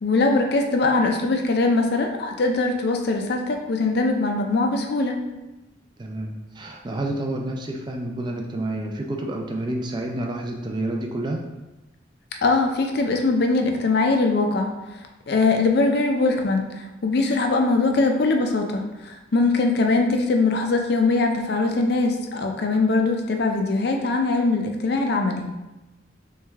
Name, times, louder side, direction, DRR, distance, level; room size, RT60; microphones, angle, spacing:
voice 1, 0.0-5.2 12.4-14.7 15.3-25.5, left 3 dB, 55° left, 4 dB, 0.4 m, -21 dB
voice 2, 6.0-11.4, right 1 dB, 25° right, 1 dB, 0.3 m, -29 dB
3.2 x 3.2 x 3.5 m, 1.0 s
head